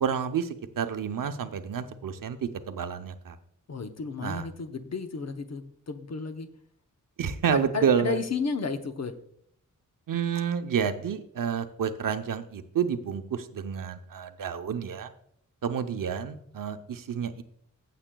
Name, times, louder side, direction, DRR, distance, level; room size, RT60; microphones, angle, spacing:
voice 1, 0.0-3.4 4.2-4.5 7.2-8.2 10.1-15.1 15.6-17.4, right 7 dB, 85° right, 8 dB, 0.7 m, -29 dB
voice 2, 3.7-6.5 7.5-9.1, left 4 dB, 55° left, 7 dB, 0.8 m, -33 dB
15.0 x 7.6 x 2.3 m, 0.68 s
wide cardioid pair, 135°, 32 cm